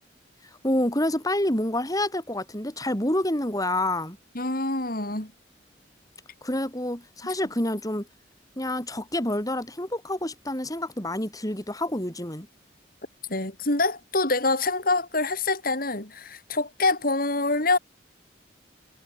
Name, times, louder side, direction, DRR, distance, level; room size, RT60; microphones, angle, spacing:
voice 1, 0.4-4.2 6.4-8.1 8.6-12.5, left 1 dB, 20° left, 5.3 m, -28 dB
voice 2, 4.3-5.3 13.3-17.8, left 2 dB, 50° left, 6.1 m, -25 dB
head